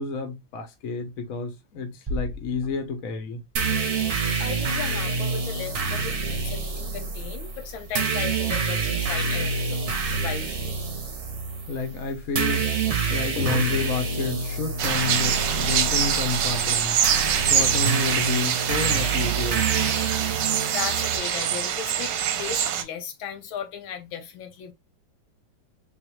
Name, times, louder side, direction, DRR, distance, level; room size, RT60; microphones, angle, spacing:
voice 1, 0.0-3.4 11.7-19.7, left 4 dB, 50° left, 1.2 m, -30 dB
sound 1, 2.1-3.9, equal, 30° right, 0.4 m, -36 dB
sound 2, 3.6-21.2, right 4 dB, 50° right, 0.9 m, -27 dB
voice 2, 4.1-9.8 10.1-10.7 20.7-24.7, left 8 dB, 80° left, 1.5 m, -36 dB
sound 3, 14.8-22.8, right 9 dB, 70° right, 1.2 m, -25 dB
3.8 x 3.1 x 3.1 m
omnidirectional pair, 2.2 m